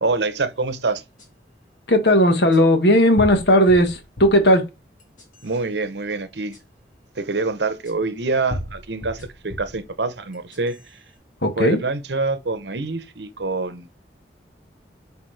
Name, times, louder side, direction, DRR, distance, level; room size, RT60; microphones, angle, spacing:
voice 1, 0.0-1.0 5.4-6.6 7.2-11.0 11.6-13.9, right 3 dB, 75° right, 0.9 m, -26 dB
sound 1, 1.2-1.3 2.5-2.6 3.2-4.5 5.0-5.6 6.5-6.6 7.8-7.9 8.5-9.8 10.3-10.9, left 1 dB, 45° left, 2.0 m, -34 dB
voice 2, 1.9-4.6 11.4-11.8, equal, 75° left, 1.4 m, -16 dB
8.2 x 4.3 x 3.3 m
head